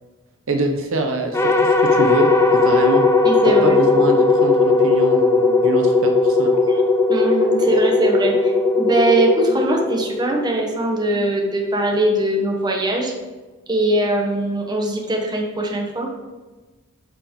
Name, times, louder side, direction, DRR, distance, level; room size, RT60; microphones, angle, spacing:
voice 1, 0.5-3.0 3.4-6.5, right 2 dB, 65° right, 4 dB, 0.9 m, -24 dB
sound 1, 1.3-10.6, left 3 dB, 15° left, 0.6 m, -17 dB
voice 2, 3.2-3.8 6.7-13.1 13.7-16.1, right 1 dB, 20° right, 0 dB, 1.3 m, -21 dB
11.5 x 4.8 x 3.8 m, 1.2 s
head